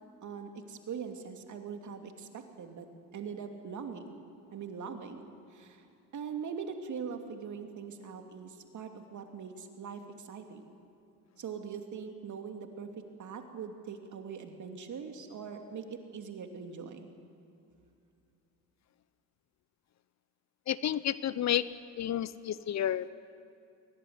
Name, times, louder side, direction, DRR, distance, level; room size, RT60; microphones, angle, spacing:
voice 1, 0.2-2.9 3.1-4.2 4.5-5.8 6.1-10.6 11.4-12.9 13.2-17.1, right 6 dB, 50° right, 5 dB, 2.8 m, -42 dB
voice 2, 20.7-23.1, left 11 dB, 45° left, 17 dB, 0.8 m, -31 dB
22.5 x 18.5 x 9.6 m, 2.6 s
supercardioid pair, 70°, 37 cm